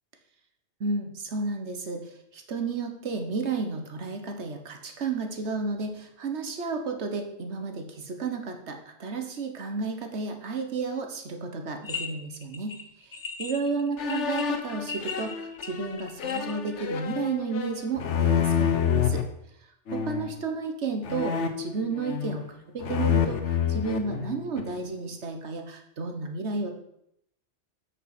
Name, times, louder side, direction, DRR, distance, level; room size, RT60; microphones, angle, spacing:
voice 1, 0.8-19.2 19.9-22.4 22.7-26.7, right 4 dB, 70° right, 5 dB, 1.4 m, -32 dB
sound 1, 11.8-12.1 12.3-16.7, left 4 dB, 40° left, 1.1 m, -37 dB
sound 2, 14.0-19.2 19.9-20.4 21.0-22.5 22.8-24.8, left 8 dB, 75° left, 1.2 m, -28 dB
7.8 x 6.3 x 6.0 m, 0.75 s
omnidirectional pair, 1.2 m